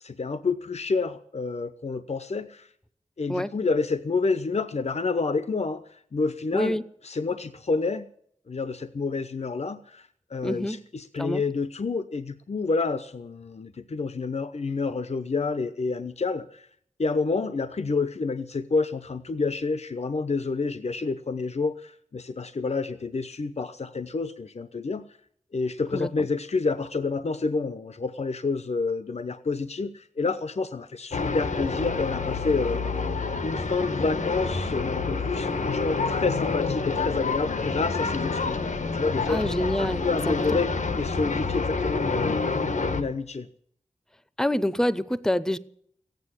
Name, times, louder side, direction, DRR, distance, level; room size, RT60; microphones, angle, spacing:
voice 1, 0.0-2.7 3.2-6.8 7.0-8.1 8.5-16.7 17.0-25.0 25.5-32.8 33.4-39.4 39.8-40.7 41.0-43.5, left 4 dB, 60° left, 11 dB, 0.8 m, -29 dB
voice 2, 10.4-10.8 11.2-11.4 25.9-26.3 39.3-40.6 44.4-45.6, left 1 dB, 5° left, 15 dB, 0.7 m, -27 dB
sound 1, 31.1-43.0, left 4 dB, 85° left, 1.4 m, -28 dB
15.0 x 9.4 x 9.8 m, 0.65 s
wide cardioid pair, 60°, 12 cm